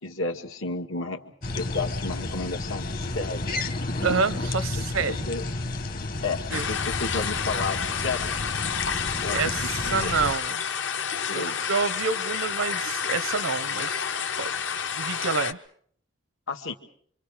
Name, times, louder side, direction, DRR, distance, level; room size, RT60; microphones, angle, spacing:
voice 1, 0.0-1.2 1.5-3.5 4.8-5.4 6.2-8.4 9.2-10.1 11.3-11.7 16.5-16.7, left 3 dB, 85° left, 2.0 m, -32 dB
sound 1, 1.4-10.3, left 2 dB, 45° left, 1.2 m, -32 dB
voice 2, 4.0-5.3 6.5-6.7 9.3-10.6 11.3-14.0 14.4-14.5 15.0-15.6, right 5 dB, 85° right, 0.9 m, -28 dB
sound 2, 6.5-15.5, left 7 dB, 60° left, 1.0 m, -30 dB
27.0 x 24.5 x 5.0 m
head